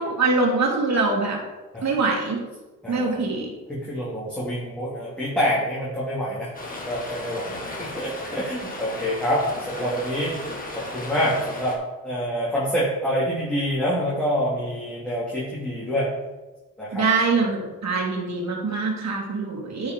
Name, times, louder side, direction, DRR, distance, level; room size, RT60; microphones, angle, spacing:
voice 1, 0.0-1.4 1.8-2.4 2.9-3.5 16.9-19.9, right 3 dB, 50° right, -1 dB, 2.6 m, -23 dB
voice 2, 2.8-3.3 3.7-6.5 6.9-10.3 10.9-11.7 12.0-16.1 16.8-17.0, equal, 5° left, -9 dB, 2.9 m, -26 dB
Stream, 6.5-11.8, left 2 dB, 25° left, 2.1 m, -35 dB
9.6 x 5.5 x 4.0 m, 1.1 s
cardioid pair, 70°, 34 cm